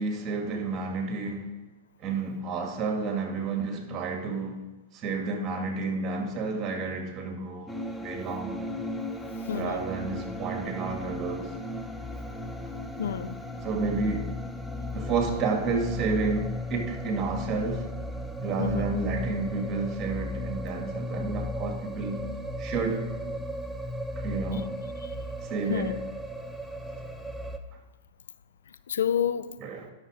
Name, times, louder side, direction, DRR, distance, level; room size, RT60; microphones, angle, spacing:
voice 1, 0.0-1.5 2.0-4.6 4.9-7.7 8.0-8.5 9.5-11.6 13.6-14.3 14.9-17.9 18.4-22.3 22.6-23.1 24.2-24.7 25.4-26.0 29.6-29.9, right 4 dB, 30° right, 2.1 m, -30 dB
sound 1, 7.7-27.6, left 1 dB, 5° left, 0.8 m, -35 dB
voice 2, 9.4-9.9 13.0-13.4 18.6-18.8 25.0-25.2 25.7-26.0 28.9-29.6, left 9 dB, 80° left, 0.5 m, -29 dB
11.5 x 5.9 x 5.1 m
hypercardioid pair, 115°, 0 cm